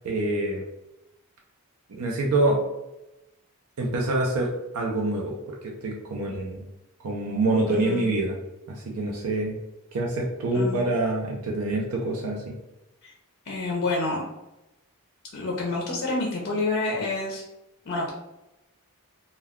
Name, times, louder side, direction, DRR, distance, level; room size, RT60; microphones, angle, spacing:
voice 1, 0.0-0.6 1.9-2.6 3.8-6.6 7.0-8.4 8.7-9.6 9.9-12.5, right 2 dB, 80° right, -1 dB, 0.5 m, -26 dB
voice 2, 7.7-8.1 10.5-10.9 13.0-13.1 13.5-14.2 15.3-17.4 17.9-18.1, left 2 dB, 50° left, -2 dB, 0.4 m, -28 dB
2.2 x 2.2 x 3.5 m, 0.92 s
head